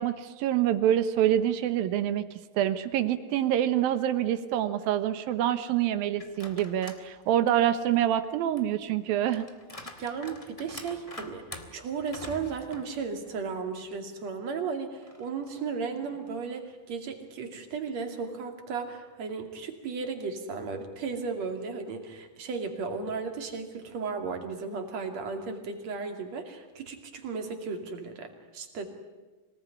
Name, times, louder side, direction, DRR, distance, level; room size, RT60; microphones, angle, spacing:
voice 1, 0.0-2.2 2.5-9.4, right 11 dB, 80° right, 11 dB, 2.9 m, -26 dB
sound 1, 6.2-7.1 7.5-13.6 13.9-14.0 15.0-16.5, left 2 dB, 20° left, 1.0 m, -47 dB
voice 2, 10.0-11.4 11.7-28.9, right 5 dB, 50° right, 5 dB, 3.5 m, -35 dB
26.0 x 19.0 x 9.8 m, 1.2 s
omnidirectional pair, 4.2 m